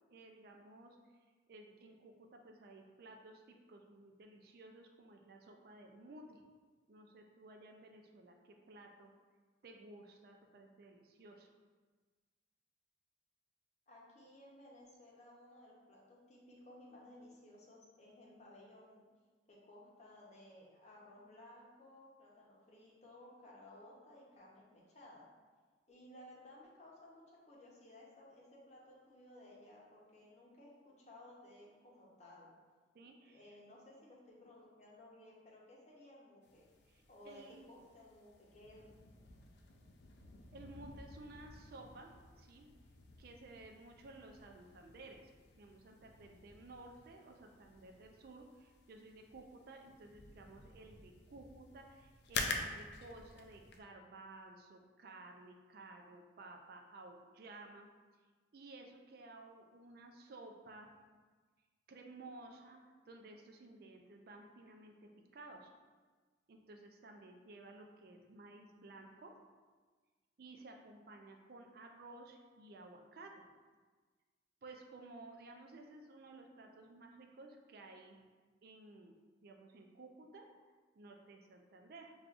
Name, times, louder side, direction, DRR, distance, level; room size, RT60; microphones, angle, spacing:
voice 1, 0.1-1.0 1.5-6.5 6.9-9.1 9.6-11.5 32.9-33.6 36.9-37.6 40.5-42.7 43.2-45.2 45.6-57.9 58.5-61.0 61.9-65.7 66.5-69.4 70.4-73.4 74.6-78.2 78.6-79.1 79.4-80.5 81.0-82.1, right 2 dB, 55° right, 3 dB, 0.4 m, -55 dB
voice 2, 13.9-19.0 19.5-25.3 25.9-32.5 33.0-36.7 37.1-38.9, left 1 dB, 40° left, -4 dB, 0.8 m, -58 dB
sound 1, 36.4-53.8, left 3 dB, 60° left, 0.4 m, -49 dB
6.1 x 2.4 x 2.5 m, 1.4 s
head